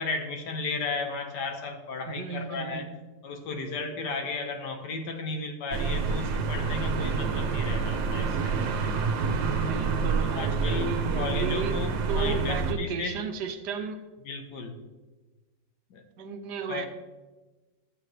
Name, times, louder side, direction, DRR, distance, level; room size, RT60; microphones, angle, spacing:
voice 1, 0.0-2.9 3.2-8.9 10.2-13.2 14.2-14.8 15.9-16.0 16.7-16.9, left 4 dB, 70° left, 5 dB, 1.6 m, -34 dB
voice 2, 2.1-2.9 9.4-11.8 12.1-14.0 16.2-16.9, right 6 dB, 70° right, 6 dB, 1.3 m, -34 dB
sound 1, 5.7-12.7, right 4 dB, 90° right, 1.6 m, -28 dB
12.5 x 7.6 x 3.2 m, 1.2 s
omnidirectional pair, 2.0 m